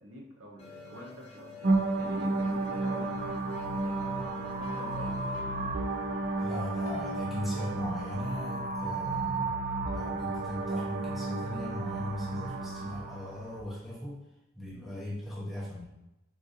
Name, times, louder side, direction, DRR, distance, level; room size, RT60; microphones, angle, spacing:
voice 1, 0.0-3.5 3.8-5.3 14.7-14.9, right 1 dB, 75° right, -1 dB, 0.7 m, -47 dB
sound 1, 0.6-7.9, left 4 dB, 30° left, 0.5 m, -47 dB
sound 2, 1.6-13.6, right 2 dB, 50° right, 0.4 m, -32 dB
sound 3, 3.5-8.5, left 4 dB, 85° left, 0.5 m, -49 dB
voice 2, 6.4-9.5 9.9-14.2 14.6-15.8, left 1 dB, ahead, -7 dB, 0.8 m, -38 dB
3.8 x 2.7 x 2.4 m, 0.90 s
head